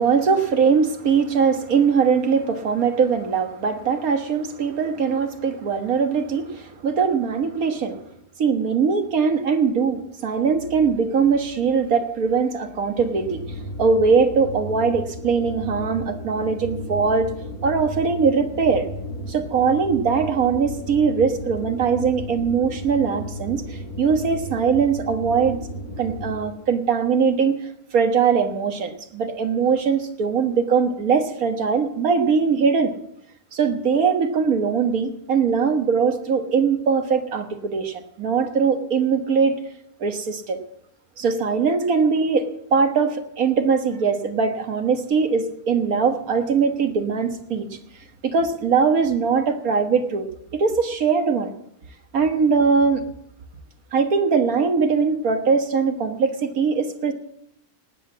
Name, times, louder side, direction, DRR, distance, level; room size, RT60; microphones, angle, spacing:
voice 1, 0.0-8.0 8.4-13.4 13.8-17.3 17.6-18.9 19.3-25.6 26.0-27.6 27.9-32.9 33.5-39.6 40.0-40.6 41.2-47.7 48.2-50.3 50.5-51.5 52.1-53.0 53.9-57.1, right 5 dB, 75° right, 6 dB, 1.8 m, -21 dB
sound 1, 12.9-26.6, left 1 dB, 75° left, 5.1 m, -34 dB
19.0 x 8.0 x 7.3 m, 0.74 s
omnidirectional pair, 1.5 m